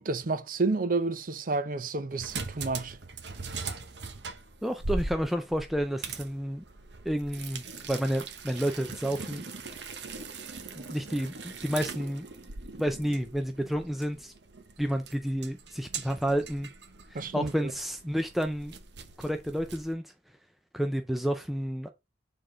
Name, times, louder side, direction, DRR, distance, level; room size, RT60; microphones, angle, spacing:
voice 1, 0.0-3.0 17.1-17.7, right 3 dB, 50° right, 0.6 m, -30 dB
sound 1, 2.1-19.9, right 4 dB, 70° right, 0.9 m, -41 dB
voice 2, 4.6-6.6 7.1-9.4 10.7-12.3 12.8-14.3 14.8-16.7 17.1-18.7 19.2-20.1 20.7-21.9, equal, ahead, 0.4 m, -30 dB
6.7 x 3.8 x 3.8 m
head